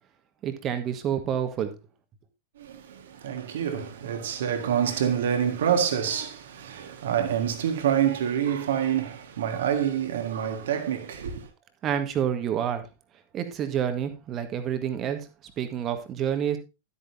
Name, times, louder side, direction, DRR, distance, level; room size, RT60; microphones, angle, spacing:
voice 1, 0.4-1.7 11.8-12.9 13.3-15.3 15.6-16.6, right 9 dB, 30° right, 1.6 m, -28 dB
voice 2, 2.6-11.5, right 9 dB, 60° right, 1.7 m, -27 dB
12.5 x 8.6 x 2.8 m
figure-of-eight pair, 90°, 0 cm